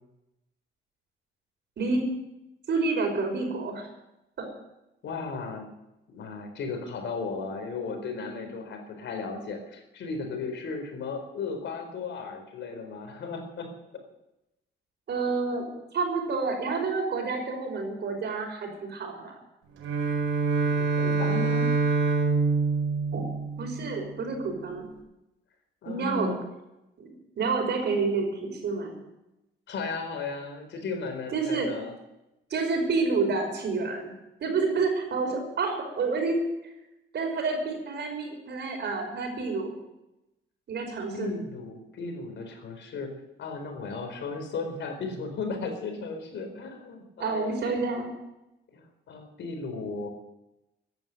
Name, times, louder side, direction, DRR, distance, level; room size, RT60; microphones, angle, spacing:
voice 1, 2.7-3.9 4.4-4.5 15.1-19.4 23.1-23.2 23.6-24.9 25.9-26.3 27.0-29.0 31.3-31.7 32.5-34.1 34.4-36.4 37.1-39.8 40.7-41.4 47.2-48.1, right 4 dB, 60° right, 3 dB, 5.4 m, -29 dB
voice 2, 5.0-5.7 6.1-13.7 20.6-21.7 25.8-26.4 29.7-31.9 41.1-47.8 48.7-50.1, left 4 dB, 70° left, 5 dB, 4.4 m, -35 dB
Bowed string instrument, 19.7-24.1, right 4 dB, 90° right, 4.7 m, -26 dB
14.5 x 11.0 x 7.9 m, 0.92 s
cardioid pair, 90°, 20 cm